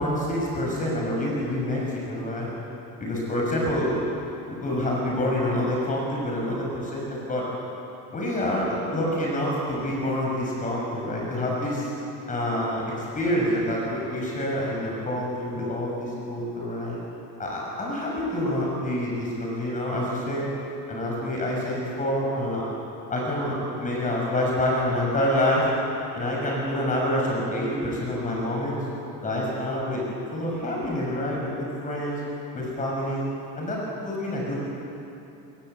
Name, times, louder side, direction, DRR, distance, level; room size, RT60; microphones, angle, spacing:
voice 1, 0.0-2.5 3.0-4.0 4.6-7.5 8.1-11.9 12.3-17.0 17.4-20.5 20.9-22.7 23.1-25.7 26.1-28.8 29.2-30.0 30.3-32.2 32.5-33.2 33.6-34.5, left 1 dB, 25° left, -3 dB, 6.4 m, -27 dB
29.0 x 22.5 x 8.1 m, 2.9 s
cardioid pair, 155°, 33 cm